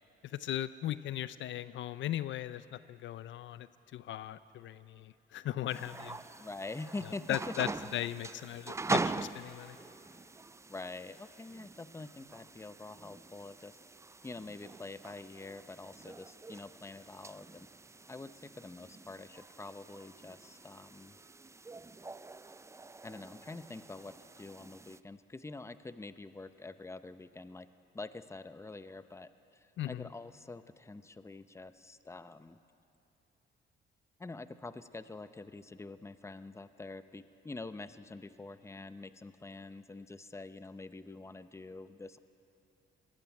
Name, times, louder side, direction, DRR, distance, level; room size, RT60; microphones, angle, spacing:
voice 1, 0.2-6.2 7.3-9.8 29.8-30.1, left 12 dB, 70° left, 15 dB, 0.6 m, -38 dB
sound 1, 5.7-25.0, right 3 dB, 15° right, 0.4 m, -43 dB
voice 2, 6.4-7.5 10.7-13.8 14.2-17.7 18.1-21.2 23.0-27.7 27.9-32.6 34.2-42.2, left 3 dB, 15° left, 12 dB, 0.8 m, -46 dB
19.5 x 15.5 x 9.9 m, 2.8 s
cardioid pair, 90°, 20 cm